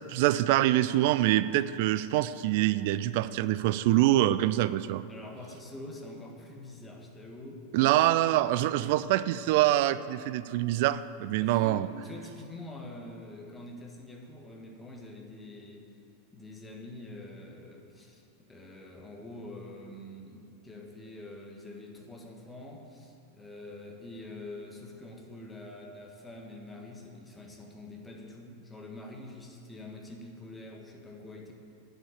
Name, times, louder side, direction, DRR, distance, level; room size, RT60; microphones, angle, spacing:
voice 1, 0.0-5.0 7.7-11.9, right 14 dB, 50° right, 15 dB, 0.4 m, -25 dB
voice 2, 5.1-7.7 11.3-15.9 16.3-18.2 18.5-31.5, left 2 dB, 10° left, 0 dB, 1.6 m, -45 dB
8.8 x 7.6 x 8.8 m, 2.7 s
figure-of-eight pair, 90°, 0 cm